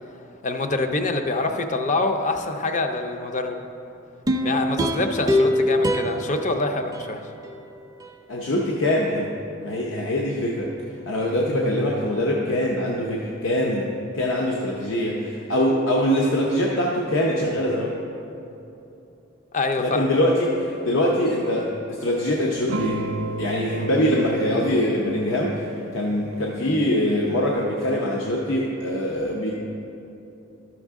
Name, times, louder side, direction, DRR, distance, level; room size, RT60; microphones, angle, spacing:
voice 1, 0.4-3.6 4.4-7.2 19.5-20.1, left 2 dB, 35° left, 6 dB, 0.5 m, -25 dB
sound 1, 4.3-7.6 8.0-8.1, left 1 dB, 20° right, 0.4 m, -24 dB
voice 2, 8.3-9.3 9.6-10.7 11.1-17.9 19.8-23.0 23.4-25.7 25.9-29.5, left 1 dB, 75° left, -2 dB, 0.7 m, -23 dB
sound 2, 22.7-27.6, right 1 dB, 90° right, 0.5 m, -34 dB
12.5 x 6.1 x 3.6 m, 2.9 s
head